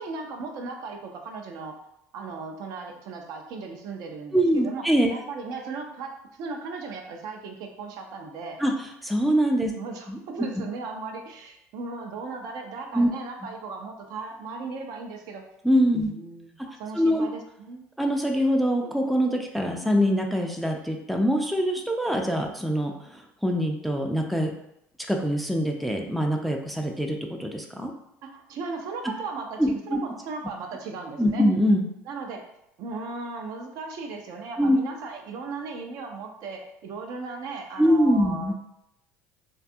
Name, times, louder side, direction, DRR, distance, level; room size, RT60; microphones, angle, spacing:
voice 1, 0.0-1.8 2.1-8.6 9.6-15.4 16.0-17.9 28.2-31.5 32.1-32.4 32.8-38.5, right 4 dB, 60° right, 2 dB, 0.5 m, -37 dB
voice 2, 4.3-5.1 8.6-8.7 9.0-9.7 10.1-10.2 12.9-13.1 15.6-16.1 16.9-17.3 18.0-24.5 25.1-27.9 29.6-30.0 31.2-31.8 34.6-34.8 37.8-38.5, equal, ahead, 2 dB, 0.4 m, -23 dB
2.6 x 2.3 x 2.6 m, 0.80 s
hypercardioid pair, 75°, 7 cm